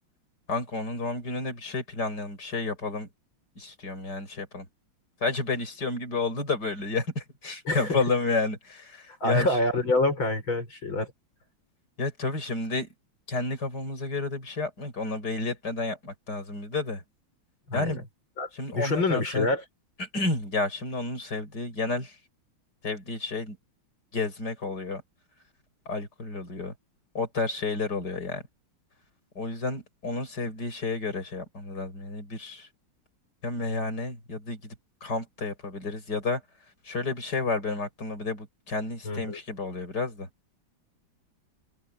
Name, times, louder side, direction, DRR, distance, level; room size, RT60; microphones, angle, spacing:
voice 1, 0.5-3.1 3.6-4.7 5.2-9.5 12.0-12.9 13.3-17.0 17.7-18.0 18.5-19.5 20.0-22.2 22.8-23.6 24.1-25.0 25.9-26.7 27.2-28.4 29.4-32.7 33.4-34.7 35.0-36.4 36.9-40.3, left 3 dB, 55° left, 7.1 m, -31 dB
voice 2, 7.7-8.0 9.1-11.1 17.7-18.0 18.4-19.6 39.0-39.4, left 2 dB, 75° left, 7.3 m, -27 dB
open air
omnidirectional pair, 2.2 m